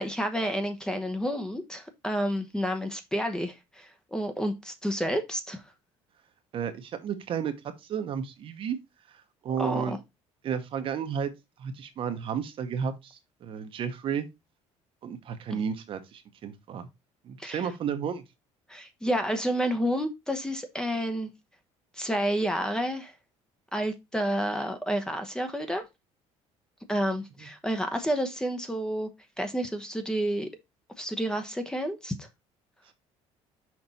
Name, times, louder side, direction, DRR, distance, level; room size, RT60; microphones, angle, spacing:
voice 1, 0.0-5.6 9.6-10.0 17.4-17.6 18.7-21.3 21.9-23.1 23.7-25.9 26.9-29.1 29.4-30.5 31.0-32.3, equal, 5° left, 0.9 m, -30 dB
voice 2, 6.5-7.5 7.8-8.8 9.1-10.0 10.4-11.3 11.6-14.3 15.0-16.9 17.2-18.2, right 7 dB, 50° right, 1.0 m, -32 dB
6.1 x 4.2 x 4.1 m
cardioid pair, 130°, 12 cm